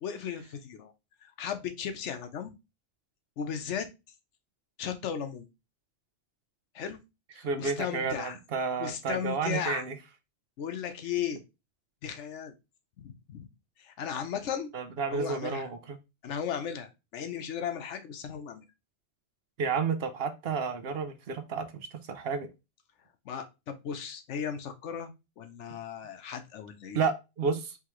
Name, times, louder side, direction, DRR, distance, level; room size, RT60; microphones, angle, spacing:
voice 1, 0.0-0.9 1.2-2.5 3.4-3.9 4.8-5.5 6.7-7.0 7.3-8.4 8.8-9.8 10.6-11.4 12.0-12.5 13.0-13.5 13.8-14.7 15.1-15.7 16.2-18.6 23.2-27.0, left 8 dB, 85° left, 8 dB, 1.0 m, -36 dB
voice 2, 7.4-9.9 14.7-16.0 19.6-22.5 26.9-27.8, right 5 dB, 60° right, 9 dB, 0.8 m, -31 dB
4.8 x 3.2 x 3.0 m, 0.26 s
omnidirectional pair, 1.2 m